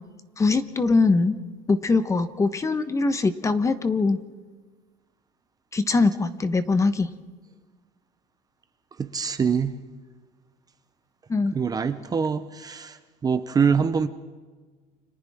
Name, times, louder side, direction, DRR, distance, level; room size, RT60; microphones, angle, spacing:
voice 1, 0.4-1.4 1.7-4.2 5.7-7.1 11.3-11.5, left 3 dB, 20° left, 1.2 m, -22 dB
voice 2, 9.0-9.8 11.5-13.0 13.2-14.1, right 6 dB, 20° right, 0.8 m, -24 dB
29.5 x 26.0 x 3.7 m
cardioid pair, 130°, 17 cm